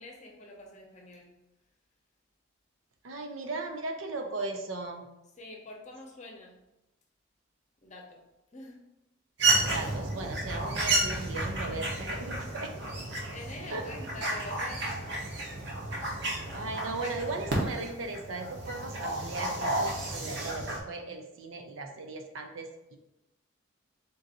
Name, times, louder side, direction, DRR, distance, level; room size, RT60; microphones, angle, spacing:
voice 1, 0.0-1.3 5.4-6.6 7.8-8.2 8.5-8.8 13.3-14.9, left 1 dB, 35° left, 0 dB, 0.7 m, -45 dB
voice 2, 3.0-5.1 9.6-12.9 13.7-13.8 16.5-23.0, right 3 dB, 80° right, 4 dB, 0.6 m, -37 dB
sound 1, 9.4-20.8, right 2 dB, 60° right, 0.9 m, -32 dB
3.9 x 2.6 x 4.0 m, 0.92 s
head